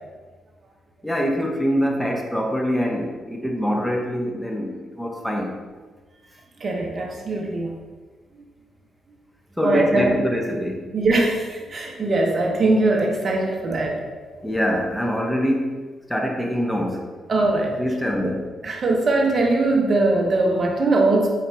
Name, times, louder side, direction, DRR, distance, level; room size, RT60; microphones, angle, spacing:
voice 1, 1.0-5.6 9.6-10.9 14.4-15.8 16.1-17.1 17.8-18.5, equal, 5° left, 1 dB, 0.6 m, -24 dB
voice 2, 6.6-7.7 9.6-10.2 10.9-14.0 17.3-17.8 18.2-18.3 18.6-21.3, right 2 dB, 50° right, 1 dB, 0.6 m, -21 dB
4.1 x 3.9 x 2.3 m, 1.4 s
hypercardioid pair, 45°, 0 cm